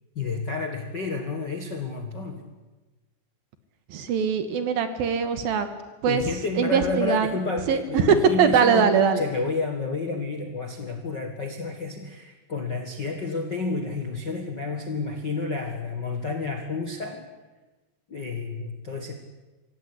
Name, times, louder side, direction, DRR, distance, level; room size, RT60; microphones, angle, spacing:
voice 1, 0.1-2.4 6.1-17.3 18.1-19.1, left 3 dB, 50° left, 4 dB, 1.3 m, -30 dB
voice 2, 3.9-5.7 6.0-6.3 6.6-7.4 7.7-9.2, right 6 dB, 65° right, 10 dB, 2.9 m, -21 dB
25.0 x 17.0 x 10.0 m, 1.2 s
omnidirectional pair, 4.9 m